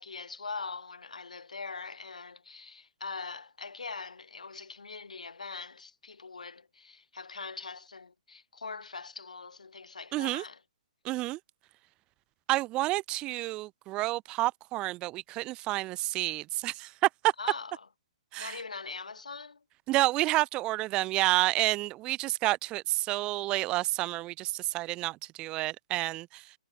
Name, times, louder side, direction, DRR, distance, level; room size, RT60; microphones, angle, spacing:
voice 1, 0.0-10.6 17.4-17.9 18.4-19.6, left 4 dB, 80° left, 3.1 m, -42 dB
voice 2, 10.1-10.4 11.0-11.4 12.5-17.3 18.3-18.6 19.9-26.5, right 18 dB, 25° right, 0.5 m, -29 dB
figure-of-eight pair, 130°, 4 cm